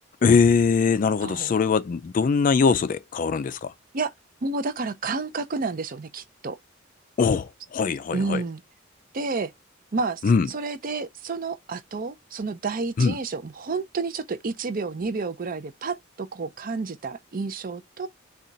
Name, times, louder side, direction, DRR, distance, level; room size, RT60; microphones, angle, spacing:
voice 1, 0.2-3.7 7.2-8.4 10.2-10.5 13.0-13.2, left 5 dB, 40° left, 0.3 m, -21 dB
voice 2, 1.2-1.6 3.9-4.1 4.4-6.6 8.1-8.6 9.1-9.5 9.9-18.1, right 4 dB, 45° right, 0.5 m, -30 dB
4.2 x 2.4 x 3.8 m
head